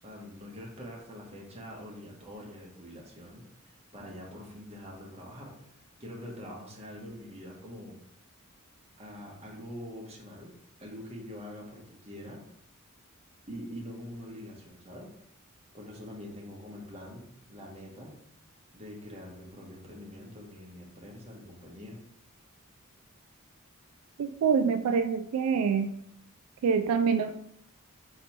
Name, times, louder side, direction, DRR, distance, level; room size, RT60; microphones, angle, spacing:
voice 1, 0.0-5.5 6.0-8.0 9.0-10.5 10.8-12.4 13.5-15.1 15.7-18.1 18.7-22.0, equal, 30° right, -2 dB, 1.0 m, -44 dB
voice 2, 24.2-25.9 26.6-27.3, right 6 dB, 75° right, 6 dB, 0.3 m, -25 dB
4.0 x 3.0 x 4.4 m, 0.72 s
head